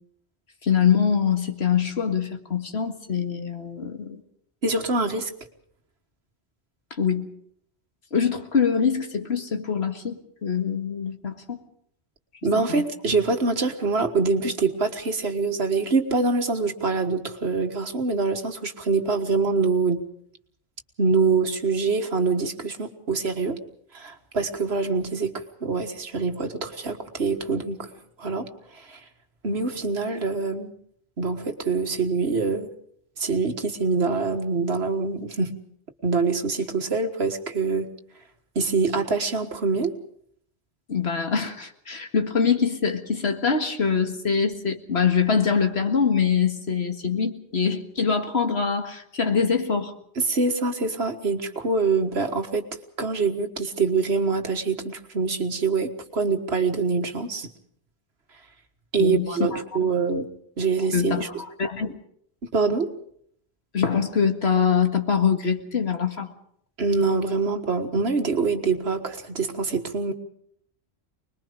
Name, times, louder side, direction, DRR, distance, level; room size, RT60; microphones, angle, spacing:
voice 1, 0.6-4.2 6.9-7.3 8.1-11.6 12.7-12.8 40.9-49.9 59.0-59.9 60.9-62.0 63.7-66.3, left 6 dB, 75° left, 6 dB, 2.1 m, -24 dB
voice 2, 4.6-5.3 12.4-20.0 21.0-23.6 23.9-27.9 28.2-29.0 29.4-30.7 31.2-32.7 33.2-35.6 36.0-37.9 38.6-39.9 50.2-52.7 53.0-57.5 58.9-60.3 60.6-61.3 62.5-62.9 66.8-70.1, right 4 dB, 70° right, 7 dB, 1.9 m, -25 dB
25.0 x 21.0 x 5.1 m, 0.67 s
omnidirectional pair, 1.1 m